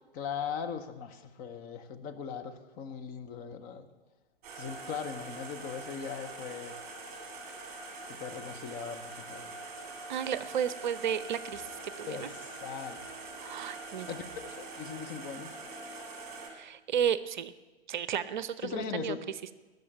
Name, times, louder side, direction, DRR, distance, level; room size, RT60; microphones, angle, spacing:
voice 1, 0.1-3.9 4.5-6.8 8.1-9.5 12.1-13.0 13.3-13.6 14.1-15.5 18.6-19.2, left 6 dB, 25° left, 7 dB, 1.1 m, -39 dB
sound 1, 4.4-16.5, right 3 dB, 25° right, 3.0 m, -44 dB
voice 2, 10.1-12.3 13.4-14.1 16.5-17.5 17.9-19.2, right 8 dB, 50° right, 16 dB, 0.7 m, -33 dB
19.5 x 6.7 x 8.8 m, 1.2 s
figure-of-eight pair, 115°, 31 cm